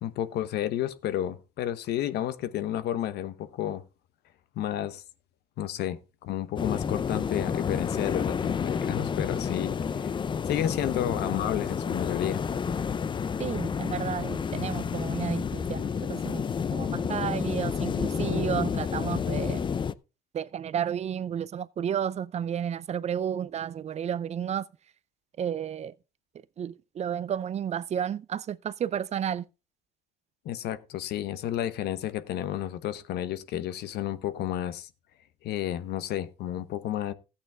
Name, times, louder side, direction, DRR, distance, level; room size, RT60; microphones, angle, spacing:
voice 1, 0.0-3.8 4.6-5.0 5.6-10.1 10.5-12.4 30.4-34.9 35.4-37.1, left 12 dB, 75° left, 0.9 m, -31 dB
sound 1, 6.6-19.9, left 6 dB, 30° left, 0.5 m, -30 dB
voice 2, 13.4-16.4 16.7-19.6 20.3-24.7 25.4-25.9 26.6-29.5, right 9 dB, 40° right, 0.5 m, -32 dB
14.0 x 8.5 x 3.4 m
cardioid pair, 110°, 17 cm